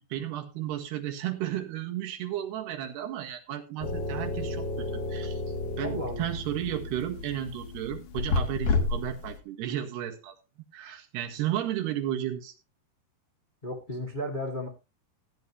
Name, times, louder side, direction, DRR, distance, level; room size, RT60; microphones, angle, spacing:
voice 1, 0.1-5.4 5.8-10.4 10.7-12.5, right 12 dB, 80° right, 4 dB, 3.7 m, -33 dB
sound 1, 3.8-9.4, left 3 dB, 60° left, 3.5 m, -31 dB
voice 2, 5.8-6.3 13.6-14.7, equal, 20° left, 1 dB, 1.3 m, -34 dB
15.5 x 10.5 x 3.1 m, 0.27 s
omnidirectional pair, 4.7 m